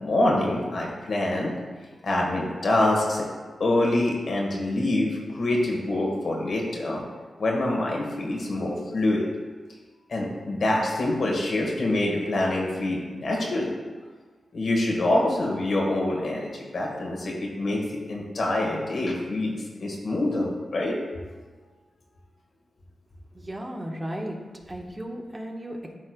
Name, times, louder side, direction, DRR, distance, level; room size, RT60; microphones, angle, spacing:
voice 1, 0.0-1.5 2.0-3.3 3.6-7.0 7.4-9.2 10.1-13.7 14.5-20.9, left 1 dB, 70° left, -1 dB, 1.5 m, -25 dB
voice 2, 23.3-24.4 24.7-26.0, equal, 25° right, 0 dB, 1.3 m, -35 dB
12.5 x 4.4 x 2.3 m, 1.4 s
cardioid pair, 45°, 0 cm